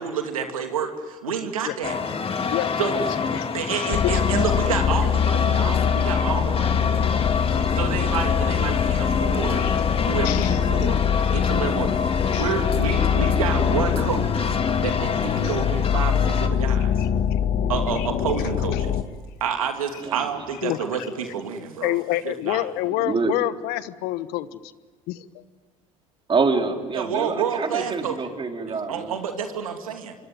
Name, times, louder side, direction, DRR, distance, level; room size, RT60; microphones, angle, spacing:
voice 1, 0.0-2.0 2.8-3.0 3.5-6.8 7.7-9.6 10.1-11.0 11.3-11.9 12.3-14.5 14.8-16.9 17.7-18.9 19.4-22.0 22.2-22.7 26.9-28.2 28.7-30.1, right 7 dB, 90° right, 5 dB, 2.8 m, -29 dB
sound 1, 1.8-16.5, left 5 dB, 30° left, 2.3 m, -26 dB
sound 2, 3.9-19.0, left 8 dB, 50° left, 1.6 m, -24 dB
voice 2, 10.2-10.9 12.3-12.5 15.4-15.6 17.0-17.1 18.0-18.1 18.7-18.8 20.6-20.8 21.8-24.6 25.1-25.4, left 16 dB, 65° left, 14 dB, 1.2 m, -28 dB
voice 3, 20.0-20.4 23.0-23.3 26.3-29.2, right 4 dB, 30° right, 4 dB, 4.0 m, -26 dB
26.5 x 23.0 x 9.4 m, 1.4 s
hypercardioid pair, 75°, 17 cm